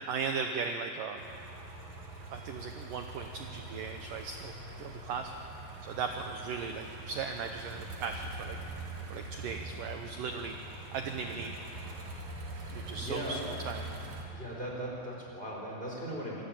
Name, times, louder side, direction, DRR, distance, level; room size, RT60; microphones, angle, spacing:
voice 1, 0.1-1.2 2.3-5.3 5.8-8.6 9.1-10.6 10.9-11.5 12.7-13.4 13.6-13.8, right 5 dB, 70° right, 5 dB, 2.2 m, -37 dB
sound 1, 1.2-14.2, right 2 dB, 50° right, 3.7 m, -43 dB
voice 2, 12.5-13.4 14.3-16.4, equal, 15° left, -3 dB, 4.4 m, -39 dB
26.5 x 15.0 x 8.9 m, 2.7 s
omnidirectional pair, 4.8 m